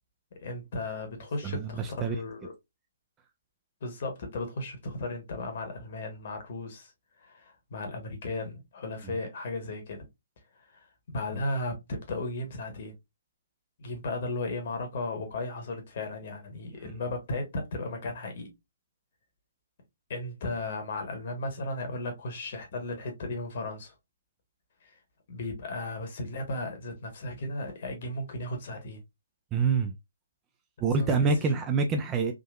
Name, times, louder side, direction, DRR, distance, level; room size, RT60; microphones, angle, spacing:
voice 1, 0.3-2.5 3.8-6.9 7.2-10.1 10.6-12.9 13.8-18.5 20.1-23.9 24.8-24.9 25.3-29.0 30.9-31.5, left 2 dB, 45° left, 1.2 m, -35 dB
voice 2, 1.4-2.2 29.5-29.9 30.8-32.3, right 4 dB, 15° right, 0.4 m, -26 dB
3.7 x 2.6 x 2.3 m
figure-of-eight pair, 135°, 0 cm